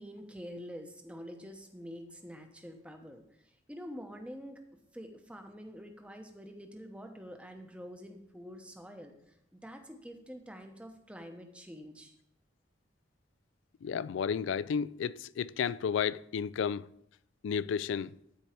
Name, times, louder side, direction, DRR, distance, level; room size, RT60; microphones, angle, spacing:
voice 1, 0.0-12.1, equal, 5° right, 0.8 m, -47 dB
voice 2, 13.8-16.9 17.4-18.1, left 7 dB, 75° left, 0.3 m, -32 dB
13.0 x 4.6 x 4.4 m
head